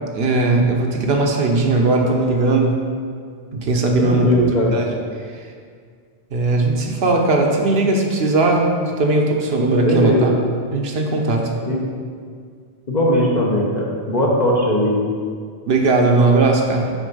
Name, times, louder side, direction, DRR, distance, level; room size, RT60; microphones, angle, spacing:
voice 1, 0.1-2.8 3.5-4.9 6.3-8.7 9.0-10.3 10.7-11.5 15.7-16.9, right 2 dB, 65° right, 1 dB, 1.0 m, -18 dB
voice 2, 4.0-4.7 9.8-10.4 11.7-11.8 12.9-15.0, equal, 40° left, -2 dB, 1.0 m, -18 dB
6.3 x 4.4 x 5.4 m, 2.1 s
omnidirectional pair, 1.1 m